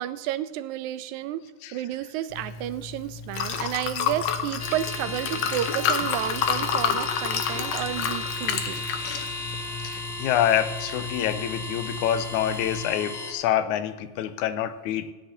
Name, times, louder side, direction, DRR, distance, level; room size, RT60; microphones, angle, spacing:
voice 1, 0.0-8.9, right 12 dB, 85° right, 13 dB, 1.9 m, -31 dB
Liquid, 2.3-12.8, left 7 dB, 70° left, 2.0 m, -30 dB
sound 1, 4.6-13.3, left 2 dB, 40° left, 2.0 m, -35 dB
voice 2, 9.8-15.1, left 10 dB, 85° left, 11 dB, 2.1 m, -26 dB
16.5 x 10.0 x 2.8 m, 1.3 s
omnidirectional pair, 3.4 m